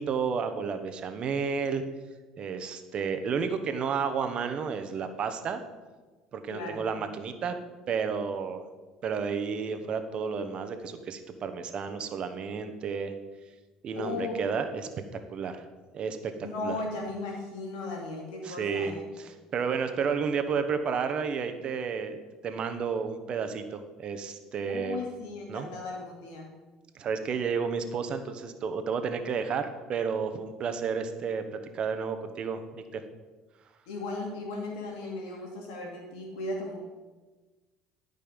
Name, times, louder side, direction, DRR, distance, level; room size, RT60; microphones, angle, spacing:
voice 1, 0.0-1.8 2.4-5.6 6.3-7.6 7.9-8.7 9.0-13.1 13.8-14.9 15.3-15.6 15.9-16.3 16.6-16.8 18.4-22.2 22.4-25.0 25.5-25.7 26.9-31.4 31.7-33.0, right 6 dB, 50° right, 8 dB, 1.0 m, -31 dB
voice 2, 6.5-6.9 13.9-14.4 16.4-19.0 24.7-26.5 33.9-36.8, left 2 dB, 85° left, 0 dB, 2.5 m, -36 dB
11.5 x 5.4 x 5.2 m, 1.3 s
supercardioid pair, 90°, 2 cm